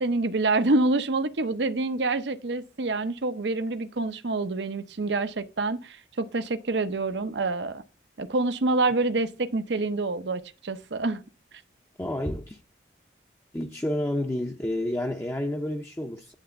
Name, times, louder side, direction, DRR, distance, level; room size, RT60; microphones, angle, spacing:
voice 1, 0.0-7.8 8.2-11.2, right 2 dB, 75° right, 0.8 m, -27 dB
voice 2, 12.0-12.6 13.5-16.3, left 1 dB, 15° left, 0.6 m, -30 dB
10.0 x 3.4 x 6.8 m
head